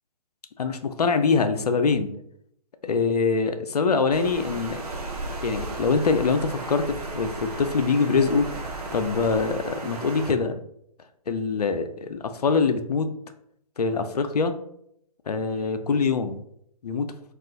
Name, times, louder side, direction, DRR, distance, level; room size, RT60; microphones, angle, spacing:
voice 1, 0.6-2.1 2.8-4.8 5.4-8.5 8.9-10.6 11.3-13.1 13.8-14.5 15.3-16.4 16.8-17.1, left 4 dB, 80° left, 8 dB, 0.4 m, -24 dB
Water, 4.1-10.3, right 2 dB, 75° right, 0.7 m, -35 dB
2.4 x 2.4 x 3.6 m, 0.73 s
figure-of-eight pair, 125°, 20 cm